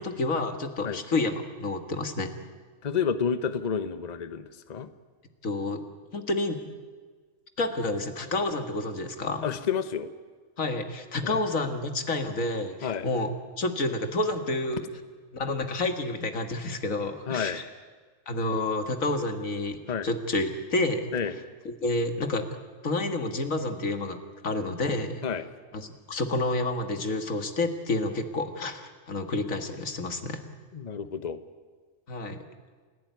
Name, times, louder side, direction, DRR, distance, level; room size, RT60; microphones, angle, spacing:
voice 1, 0.0-2.3 5.4-5.8 6.1-6.6 7.6-9.4 10.6-13.3 13.6-14.8 15.3-17.6 18.3-19.8 20.0-21.0 21.7-22.5 22.8-25.2 25.7-25.8 26.1-30.4 32.1-32.4, left 2 dB, 90° left, 7 dB, 2.3 m, -29 dB
voice 2, 2.8-4.9 9.4-10.1 11.2-11.4 12.8-13.1 17.3-17.6 19.9-20.1 21.1-21.3 25.2-25.4 30.7-31.4, left 7 dB, 35° left, 11 dB, 1.0 m, -30 dB
29.0 x 16.5 x 9.5 m, 1.5 s
omnidirectional pair, 1.4 m